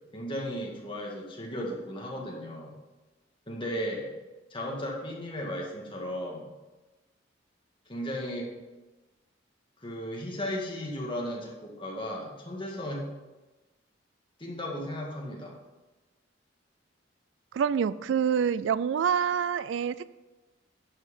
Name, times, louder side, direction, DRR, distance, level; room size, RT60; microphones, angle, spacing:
voice 1, 0.1-2.8 3.5-4.1 4.5-6.5 7.9-8.5 9.8-13.1 14.4-15.6, equal, 25° left, -2 dB, 1.9 m, -35 dB
voice 2, 17.5-20.1, right 7 dB, 70° right, 16 dB, 0.3 m, -26 dB
11.0 x 5.7 x 5.4 m, 1.1 s
head